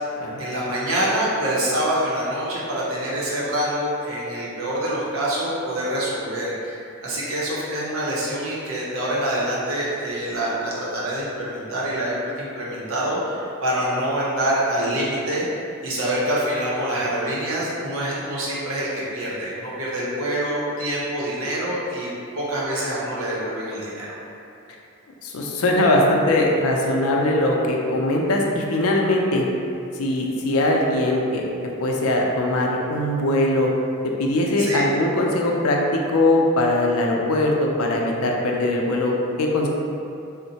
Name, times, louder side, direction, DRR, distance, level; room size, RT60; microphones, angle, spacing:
voice 1, 0.4-15.4 15.8-22.1 22.3-24.2 34.6-34.8, right 1 dB, 75° right, -6 dB, 0.7 m, -26 dB
voice 2, 25.2-29.4 29.9-31.5 31.8-33.7 34.2-39.7, left 1 dB, 85° left, 0 dB, 0.4 m, -21 dB
3.7 x 2.1 x 2.7 m, 2.6 s
head